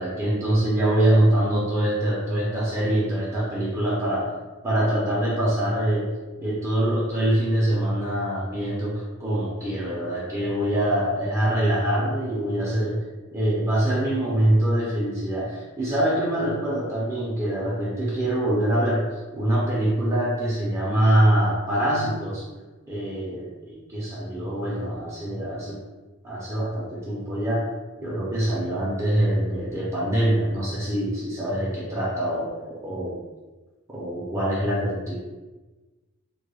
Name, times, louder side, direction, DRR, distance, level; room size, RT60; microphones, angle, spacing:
voice 1, 0.0-4.3 4.6-6.1 6.4-13.0 13.3-22.5 22.9-25.8 26.2-27.7 28.0-32.6 32.8-33.1 33.9-35.2, right 1 dB, 15° right, -7 dB, 0.4 m, -24 dB
2.2 x 2.1 x 3.2 m, 1.2 s
head